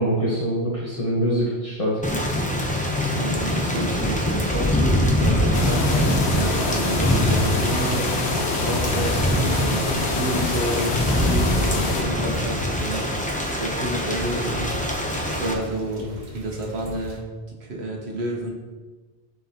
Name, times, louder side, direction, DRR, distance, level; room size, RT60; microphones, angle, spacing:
voice 1, 0.0-2.0, right 1 dB, 30° left, -6 dB, 1.2 m, -24 dB
Thunder / Rain, 2.0-15.5, equal, 10° left, 0.7 m, -23 dB
voice 2, 3.1-8.0 8.6-13.0 13.6-14.7 15.1-17.2 17.6-18.5, equal, 75° right, -1 dB, 1.5 m, -30 dB
sound 1, 5.5-12.0, left 3 dB, 80° left, 1.0 m, -27 dB
sound 2, 5.6-17.2, right 1 dB, 45° right, 1.0 m, -39 dB
11.0 x 4.6 x 2.9 m, 1.4 s
omnidirectional pair, 1.1 m